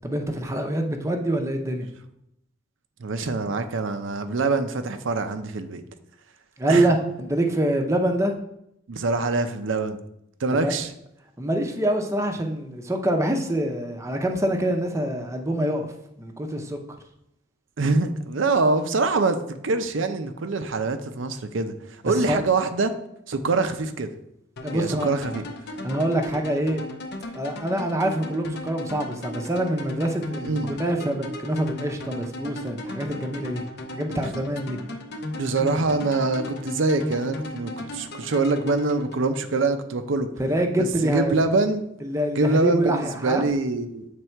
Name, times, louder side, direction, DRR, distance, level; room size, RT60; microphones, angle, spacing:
voice 1, 0.0-1.9 6.6-8.3 10.5-10.7 11.4-15.9 16.2-16.8 22.1-22.4 24.6-25.1 25.8-26.8 27.3-33.6 33.9-34.8 40.4-41.4 42.0-43.4, right 1 dB, 15° right, 3 dB, 0.7 m, -25 dB
voice 2, 3.0-5.8 6.7-6.9 8.9-10.0 10.4-10.9 17.8-22.9 23.3-24.1 24.7-25.4 30.4-30.7 35.3-40.3 40.8-41.8 42.4-44.1, right 3 dB, 75° right, 9 dB, 0.6 m, -24 dB
sound 1, 24.6-39.6, left 1 dB, 60° left, 0.7 m, -36 dB
7.9 x 3.3 x 4.5 m, 0.78 s
head